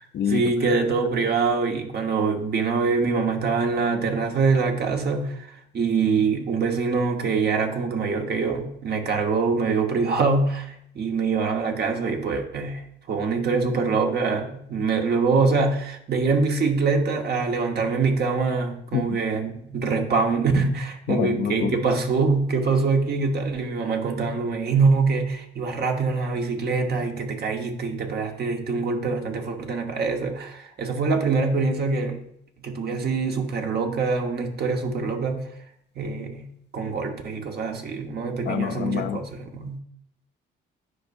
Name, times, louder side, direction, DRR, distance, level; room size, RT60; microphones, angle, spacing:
voice 1, 0.0-5.5 5.7-32.2 32.6-35.5 35.9-39.8, right 4 dB, 55° right, 3 dB, 1.2 m, -24 dB
voice 2, 21.1-21.8 38.5-39.2, left 8 dB, 60° left, 9 dB, 0.5 m, -26 dB
10.0 x 5.3 x 2.6 m, 0.72 s
cardioid pair, 90°, 20 cm